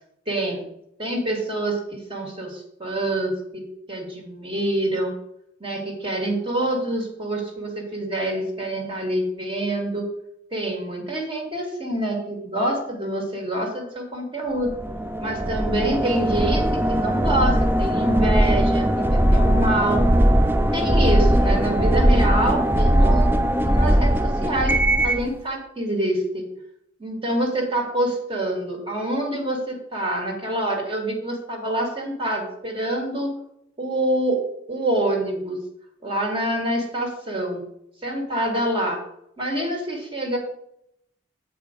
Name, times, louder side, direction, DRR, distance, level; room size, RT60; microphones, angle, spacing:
voice 1, 0.3-0.7 1.0-5.1 5.6-10.1 10.5-14.7 15.2-20.1 20.7-24.8 25.0-26.5 27.0-33.3 33.8-34.4 34.7-35.6 36.0-37.7 38.0-39.0 39.4-40.4, right 1 dB, 30° right, 1 dB, 1.8 m, -26 dB
sound 1, 14.7-25.3, right 1 dB, 10° right, 0.4 m, -19 dB
7.6 x 4.9 x 5.1 m, 0.75 s
head